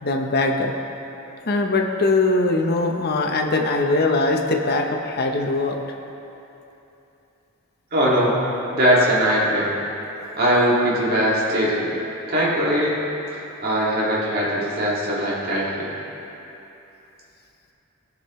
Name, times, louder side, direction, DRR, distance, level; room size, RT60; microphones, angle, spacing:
voice 1, 0.0-0.7 1.5-5.8, left 2 dB, 50° left, 2 dB, 0.9 m, -21 dB
voice 2, 7.9-8.3 8.7-9.7 10.4-11.9 12.3-12.9 13.6-15.9, equal, 50° right, -6 dB, 2.3 m, -20 dB
18.0 x 6.5 x 3.2 m, 2.9 s
head